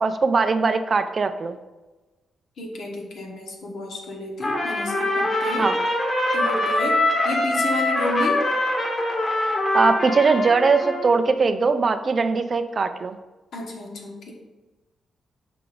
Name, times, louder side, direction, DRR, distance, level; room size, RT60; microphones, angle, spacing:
voice 1, 0.0-1.6 5.6-5.7 9.7-13.2, right 4 dB, 35° right, 10 dB, 0.3 m, -20 dB
voice 2, 2.6-5.7 6.3-8.4 13.5-14.3, left 1 dB, 65° left, 0 dB, 1.3 m, -31 dB
Trumpet, 4.4-11.1, left 1 dB, 30° left, 1.1 m, -23 dB
5.7 x 3.8 x 5.0 m, 1.2 s
wide cardioid pair, 145°, 0 cm